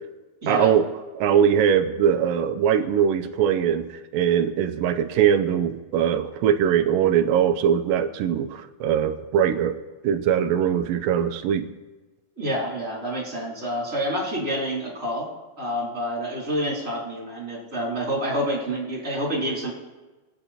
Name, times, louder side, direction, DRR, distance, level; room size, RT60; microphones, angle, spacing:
voice 1, 0.5-0.9 1.1-3.8 4.1-9.8 10.0-11.7, right 8 dB, 75° right, 7 dB, 2.2 m, -21 dB
voice 2, 12.4-15.3 15.6-19.7, equal, 20° right, -4 dB, 3.8 m, -28 dB
22.0 x 9.0 x 4.3 m, 1.2 s
omnidirectional pair, 4.4 m